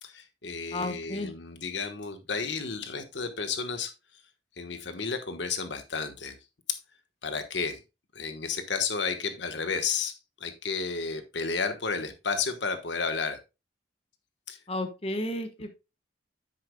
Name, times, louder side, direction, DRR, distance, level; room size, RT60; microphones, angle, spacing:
voice 1, 0.0-3.9 4.6-6.4 6.7-6.8 7.2-7.8 8.1-13.4 14.5-14.6, left 5 dB, 75° left, 8 dB, 1.2 m, -32 dB
voice 2, 0.7-1.3 14.7-15.7, left 1 dB, 30° left, 6 dB, 1.2 m, -32 dB
10.0 x 8.1 x 2.2 m, 0.26 s
head